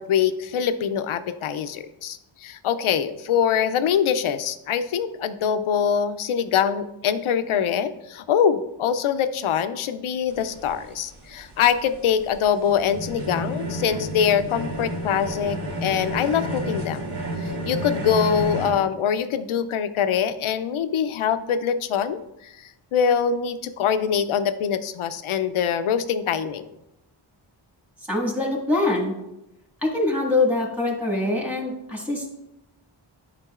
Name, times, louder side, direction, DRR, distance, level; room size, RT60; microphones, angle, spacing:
voice 1, 0.0-17.1 17.4-22.5 22.9-26.7, left 8 dB, 80° left, 12 dB, 0.6 m, -24 dB
sound 1, 10.3-18.7, equal, 80° right, 2.5 m, -31 dB
voice 2, 28.1-29.1 29.8-32.3, left 2 dB, 5° right, -2 dB, 1.7 m, -23 dB
9.7 x 5.2 x 2.4 m, 0.91 s
wide cardioid pair, 80°, 49 cm